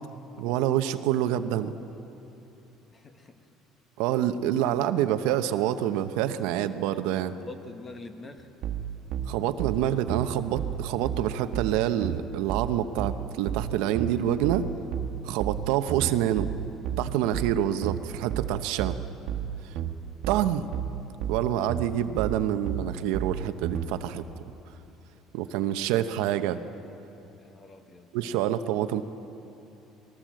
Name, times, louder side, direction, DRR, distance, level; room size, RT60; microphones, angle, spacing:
voice 1, 0.4-1.8 4.0-7.3 9.3-14.7 15.2-16.5 17.0-19.0 20.3-20.7 21.3-24.2 25.3-26.6 28.1-29.0, right 11 dB, 85° right, 10 dB, 0.9 m, -27 dB
voice 2, 2.9-3.4 6.9-7.0 7.4-8.6 27.4-28.3, left 3 dB, 25° left, 7 dB, 1.6 m, -45 dB
sound 1, 8.6-23.9, right 9 dB, 60° right, 1.5 m, -32 dB
21.0 x 18.5 x 7.6 m, 2.9 s
cardioid pair, 115°, 0 cm